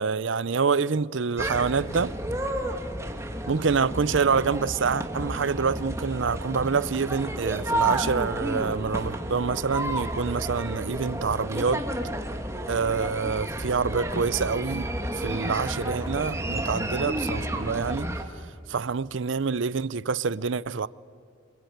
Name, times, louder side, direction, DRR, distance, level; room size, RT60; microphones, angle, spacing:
voice 1, 0.0-2.1 3.5-11.9 12.7-18.1 18.7-20.9, right 5 dB, 75° right, 0.6 m, -26 dB
sound 1, 1.4-18.2, right 1 dB, 15° right, 1.6 m, -31 dB
25.5 x 22.5 x 9.3 m
head